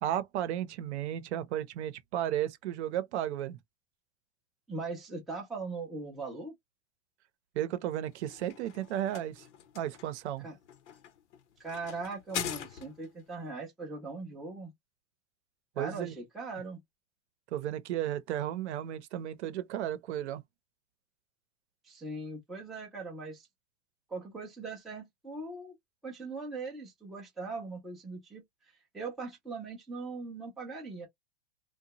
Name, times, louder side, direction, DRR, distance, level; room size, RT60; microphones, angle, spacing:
voice 1, 0.0-3.6 7.5-9.4 9.7-10.5 15.8-16.2 17.5-20.4, right 11 dB, 75° right, 0.7 m, -34 dB
voice 2, 4.7-6.5 10.4-10.6 11.6-14.7 15.8-16.8 21.8-23.5 24.1-25.7 26.0-28.4 28.9-31.1, right 3 dB, ahead, 0.4 m, -40 dB
sound 1, 8.1-13.2, left 9 dB, 85° left, 0.8 m, -42 dB
2.8 x 2.2 x 2.8 m
supercardioid pair, 160°, 34 cm